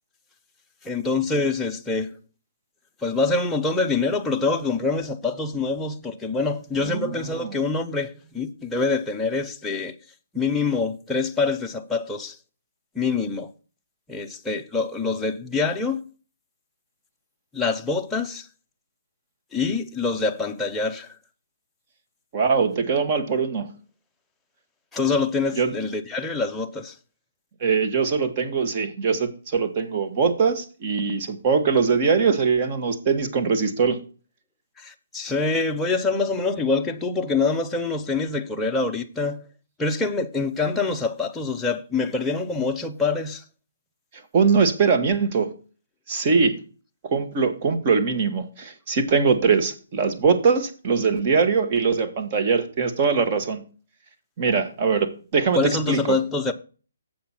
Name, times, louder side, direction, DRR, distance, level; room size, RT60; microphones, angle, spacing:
voice 1, 0.8-2.2 3.0-9.9 10.3-12.4 12.9-13.5 14.1-16.0 17.5-18.5 19.5-21.1 24.9-27.0 34.8-39.4 39.8-43.4 55.6-56.5, left 4 dB, 5° left, 0.6 m, -25 dB
voice 2, 6.8-7.5 22.3-23.7 25.6-25.7 27.6-34.0 44.3-45.5 46.1-46.6 47.0-53.6 54.4-56.2, right 5 dB, 30° right, 1.3 m, -22 dB
7.7 x 5.8 x 5.7 m
hypercardioid pair, 165°, 0 cm